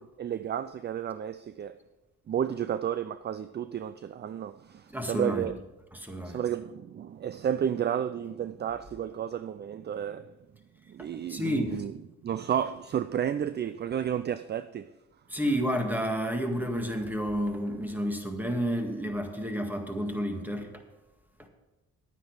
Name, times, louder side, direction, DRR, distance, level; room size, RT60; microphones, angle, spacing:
voice 1, 0.2-1.8 2.3-5.5 6.2-10.3 10.9-11.9 12.2-14.9, right 9 dB, 35° right, 0.4 m, -32 dB
voice 2, 4.9-5.5 5.9-6.4 11.0-11.8 15.3-20.7 21.4-21.5, equal, 5° right, 1.8 m, -30 dB
11.0 x 9.3 x 4.8 m
cardioid pair, 90°, 30 cm